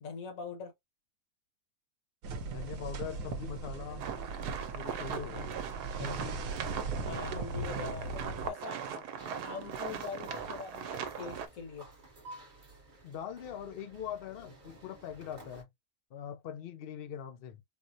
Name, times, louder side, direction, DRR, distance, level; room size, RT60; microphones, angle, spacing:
voice 1, 0.0-0.7 6.3-6.4 7.0-8.8 9.2-11.9, left 6 dB, 65° left, 1.2 m, -43 dB
sound 1, 2.2-8.5, right 3 dB, 65° right, 1.0 m, -39 dB
voice 2, 2.4-4.0 4.7-5.6 6.0-6.4 8.9-9.0 13.0-15.7 16.1-17.6, left 8 dB, 80° left, 0.5 m, -42 dB
sound 2, 4.0-11.5, right 7 dB, 90° right, 1.2 m, -39 dB
sound 3, 9.2-15.6, right 1 dB, 35° right, 1.0 m, -53 dB
4.2 x 2.1 x 2.6 m
omnidirectional pair, 1.7 m